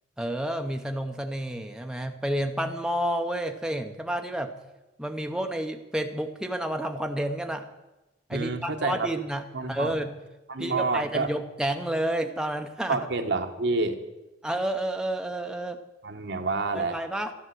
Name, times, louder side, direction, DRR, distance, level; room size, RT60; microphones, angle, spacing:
voice 1, 0.2-4.5 5.0-7.7 8.3-9.4 9.7-10.1 10.6-13.0 14.4-15.8 16.7-17.3, right 1 dB, 5° right, 4 dB, 0.7 m, -30 dB
voice 2, 8.3-9.1 9.5-9.9 10.5-11.3 12.9-14.0 16.0-17.0, right 3 dB, 65° right, 5 dB, 1.3 m, -28 dB
12.5 x 11.0 x 7.7 m, 1.0 s
head